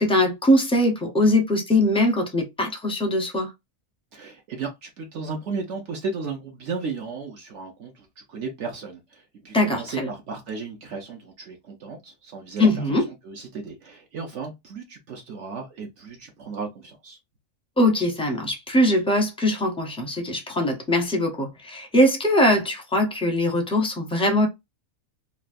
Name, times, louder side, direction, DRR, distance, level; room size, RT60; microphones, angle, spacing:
voice 1, 0.0-3.5 9.5-10.1 12.6-13.1 17.8-24.5, left 1 dB, 5° left, 0.5 m, -21 dB
voice 2, 4.1-12.7 13.2-17.2, right 4 dB, 60° right, 1.0 m, -34 dB
3.3 x 2.5 x 2.5 m
omnidirectional pair, 1.4 m